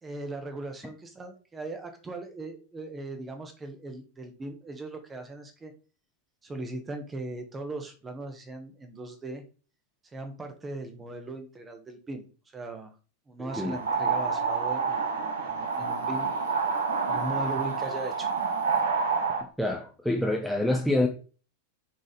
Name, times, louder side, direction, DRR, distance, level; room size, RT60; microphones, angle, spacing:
voice 1, 0.0-5.7 6.4-9.4 10.1-12.2 12.5-12.9 13.3-16.3 17.1-18.3, right 2 dB, 15° right, 1.4 m, -39 dB
voice 2, 13.4-13.8 19.6-21.1, left 1 dB, ahead, 0.9 m, -26 dB
sound 1, 13.5-19.4, right 5 dB, 65° right, 1.2 m, -28 dB
6.5 x 4.1 x 4.1 m
figure-of-eight pair, 90°, 0 cm